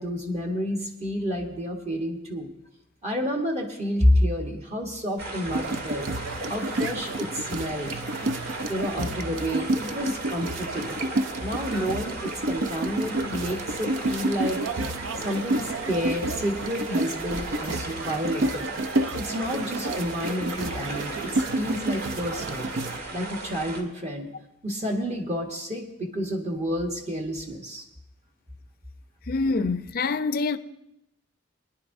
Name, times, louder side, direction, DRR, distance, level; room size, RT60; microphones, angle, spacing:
voice 1, 0.0-2.5 3.0-6.1 6.5-7.9 8.7-11.0 11.4-14.6 15.2-18.7 19.1-22.7 23.1-24.3 24.6-27.8, equal, 35° right, 1.2 m, -29 dB
sound 1, 5.2-23.8, right 2 dB, 50° right, 1.7 m, -37 dB
sound 2, 5.5-23.0, right 2 dB, 75° right, 0.6 m, -30 dB
voice 2, 29.3-30.6, left 3 dB, 50° left, 0.5 m, -25 dB
22.0 x 10.5 x 2.6 m
head